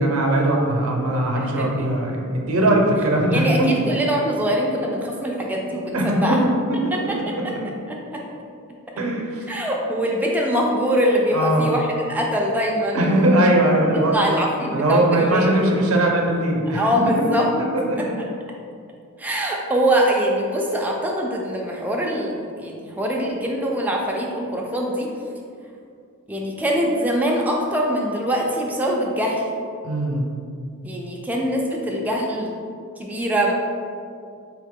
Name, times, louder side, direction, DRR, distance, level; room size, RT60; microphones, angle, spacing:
voice 1, 0.0-3.7 5.9-7.2 9.0-9.4 11.3-11.7 12.9-14.3 14.7-17.3 17.6-18.2 29.8-30.3, right 1 dB, 70° right, 0 dB, 0.6 m, -20 dB
voice 2, 1.3-1.9 3.3-6.4 6.9-7.2 7.4-7.5 7.9-8.2 9.5-13.4 13.9-15.7 16.7-17.7 18.0-18.1 19.2-25.1 26.3-29.4 30.8-32.5 33.0-33.5, equal, 5° right, -2 dB, 0.4 m, -23 dB
3.7 x 2.9 x 3.7 m, 2.4 s
head